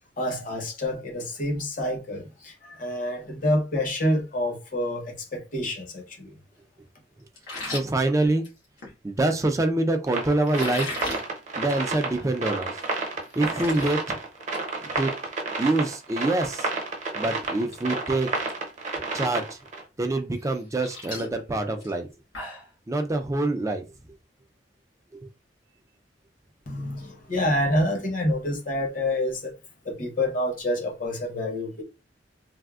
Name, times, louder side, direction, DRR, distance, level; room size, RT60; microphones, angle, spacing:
voice 1, 0.2-6.4 26.7-29.5 29.8-31.8, left 1 dB, 45° left, 0.9 m, -27 dB
sound 1, 7.4-8.9 10.4-11.2 11.6-11.8 12.2-12.3 12.8-12.9 13.2-13.9 14.3-14.6 14.9-15.1 16.9-17.0 17.5-17.8 18.0-18.5 19.0-19.1 20.4-22.7, left 2 dB, 90° left, 1.4 m, -37 dB
voice 2, 7.7-8.4 9.0-10.9 11.6-12.7 13.4-14.2 15.0-15.1 15.6-16.7 17.2-18.3 19.1-19.6 20.0-22.1 22.9-23.8 25.1-25.3, right 2 dB, 15° right, 0.4 m, -25 dB
sound 2, 10.1-19.8, right 3 dB, 40° right, 0.7 m, -30 dB
3.3 x 2.1 x 2.3 m
head